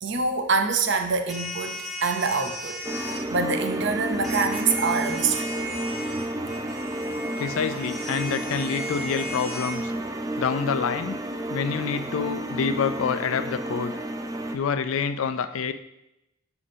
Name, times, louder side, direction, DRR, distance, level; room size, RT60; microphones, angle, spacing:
voice 1, 0.0-5.6, right 4 dB, 55° right, 6 dB, 0.6 m, -26 dB
sound 1, 1.3-3.2 4.2-9.8, right 1 dB, ahead, 0.8 m, -36 dB
sound 2, 2.8-14.6, right 1 dB, 15° right, 0.3 m, -31 dB
voice 2, 7.4-9.9 10.4-11.2 11.5-13.9 14.5-15.7, left 6 dB, 75° left, 10 dB, 0.4 m, -27 dB
6.3 x 4.8 x 4.2 m, 0.86 s
head